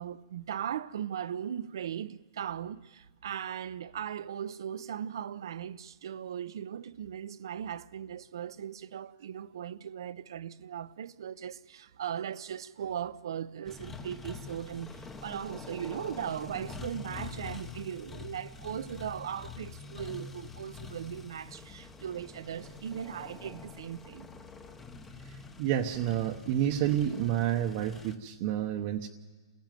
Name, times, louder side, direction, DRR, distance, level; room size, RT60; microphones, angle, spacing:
voice 1, 0.0-24.3, right 9 dB, 65° right, 0.8 m, -38 dB
sound 1, 13.7-28.2, left 5 dB, 10° left, 1.0 m, -46 dB
voice 2, 25.6-29.1, right 11 dB, 35° right, 1.0 m, -29 dB
28.0 x 16.0 x 9.2 m
hypercardioid pair, 160°, 3 cm